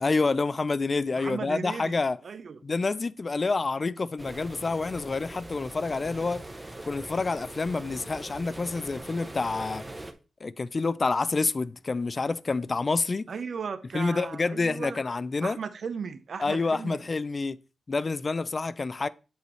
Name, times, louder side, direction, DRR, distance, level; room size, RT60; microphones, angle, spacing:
voice 1, 0.0-2.2 2.6-6.5 6.8-9.9 10.4-13.3 13.9-15.6 16.4-17.6 17.9-19.1, left 3 dB, 40° left, 0.3 m, -28 dB
voice 2, 1.1-2.6 13.3-15.0 15.4-17.0, right 5 dB, 65° right, 0.6 m, -36 dB
sound 1, 4.2-10.1, right 1 dB, 20° right, 0.7 m, -42 dB
8.2 x 4.7 x 3.1 m
wide cardioid pair, 100°, 0 cm